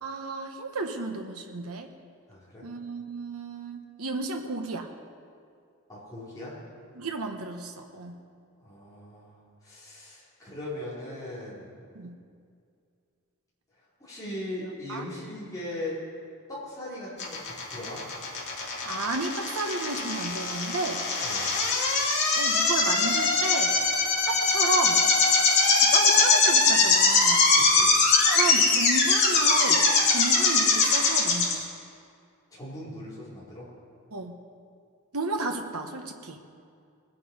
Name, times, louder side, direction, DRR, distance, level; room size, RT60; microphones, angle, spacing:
voice 1, 0.0-1.9 2.6-4.9 6.9-8.2 11.9-12.2 14.6-15.1 18.9-21.0 22.4-23.7 24.3-25.1 25.8-27.5 28.3-31.6 34.1-34.4 35.1-36.4, right 3 dB, 75° right, 4 dB, 1.1 m, -33 dB
voice 2, 2.3-2.6 5.9-6.5 8.6-9.4 9.6-11.7 14.0-16.0 16.5-18.0 21.2-21.5 27.5-27.9 32.5-33.7, left 1 dB, 15° left, -10 dB, 4.4 m, -39 dB
sound 1, 17.2-31.5, left 4 dB, 50° left, 2.7 m, -22 dB
20.0 x 8.5 x 5.4 m, 2.3 s
head